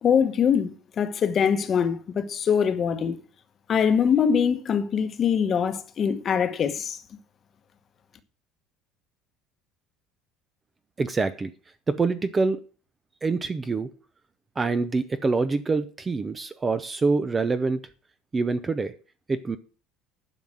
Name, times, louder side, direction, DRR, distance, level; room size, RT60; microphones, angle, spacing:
voice 1, 0.0-3.2 3.7-7.0, left 7 dB, 25° left, 1.1 m, -23 dB
voice 2, 11.0-11.5 11.9-12.6 13.2-13.9 14.6-17.8 18.3-18.9 19.3-19.6, right 4 dB, 15° right, 0.5 m, -25 dB
11.0 x 5.7 x 7.7 m
cardioid pair, 175°, 0 cm